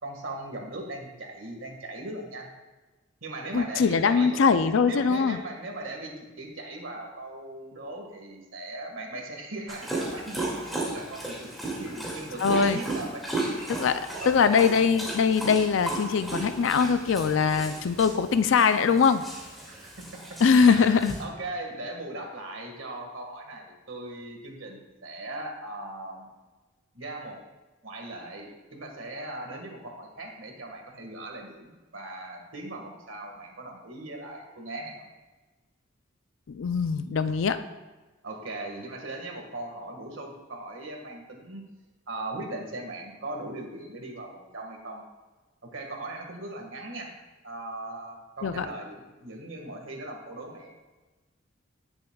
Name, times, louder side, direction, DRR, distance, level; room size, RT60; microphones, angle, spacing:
voice 1, 0.0-2.5 3.2-4.4 4.9-11.5 11.8-13.3 14.2-14.6 19.6-26.3 26.9-27.4 27.8-35.1 38.2-41.7 42.1-45.0 45.6-47.2 47.4-50.8, right 2 dB, 80° right, 2 dB, 1.7 m, -39 dB
voice 2, 3.5-5.4 12.4-12.8 13.7-19.2 20.4-21.1 36.5-37.6 48.4-48.7, left 5 dB, 75° left, 11 dB, 0.4 m, -22 dB
Dog, 9.7-21.2, right 2 dB, ahead, 2.2 m, -35 dB
17.5 x 7.1 x 2.3 m, 1.2 s
head